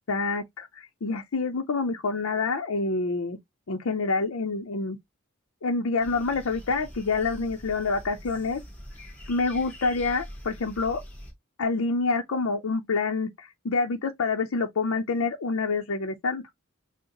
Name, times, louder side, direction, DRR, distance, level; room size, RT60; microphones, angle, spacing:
voice 1, 0.0-3.4 3.7-5.0 5.6-8.6 9.3-11.0 11.6-16.4, left 4 dB, 85° left, 0.6 m, -27 dB
sound 1, 6.0-11.3, equal, 10° left, 1.7 m, -44 dB
6.2 x 2.1 x 2.9 m
head